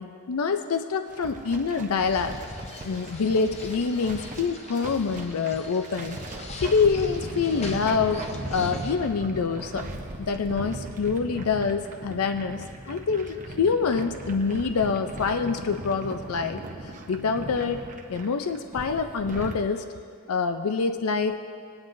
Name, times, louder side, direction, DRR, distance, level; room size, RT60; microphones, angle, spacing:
voice 1, 0.0-2.4 2.8-6.2 6.6-9.9 10.2-17.8 18.1-19.8 20.3-21.4, left 5 dB, 85° left, 8 dB, 0.5 m, -26 dB
sound 1, 1.1-19.6, right 2 dB, 35° right, 0.8 m, -38 dB
sound 2, 2.0-9.0, left 3 dB, 30° left, 0.7 m, -43 dB
20.5 x 9.6 x 2.6 m, 2.2 s
head